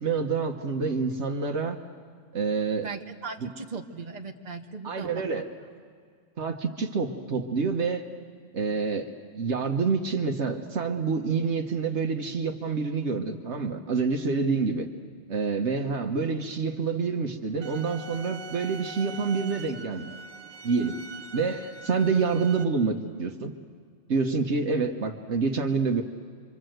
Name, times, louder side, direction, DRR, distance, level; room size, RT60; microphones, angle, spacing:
voice 1, 0.0-1.8 2.3-2.9 4.8-5.4 6.4-8.1 8.5-14.9 15.3-20.1 20.6-21.0 21.3-23.5 24.1-26.0, right 4 dB, 60° right, 5 dB, 1.3 m, -27 dB
voice 2, 2.8-5.4, right 4 dB, 35° right, 3 dB, 1.3 m, -38 dB
sound 1, 17.6-22.6, right 4 dB, 85° right, 1.6 m, -43 dB
26.0 x 26.0 x 7.8 m, 2.1 s
omnidirectional pair, 1.4 m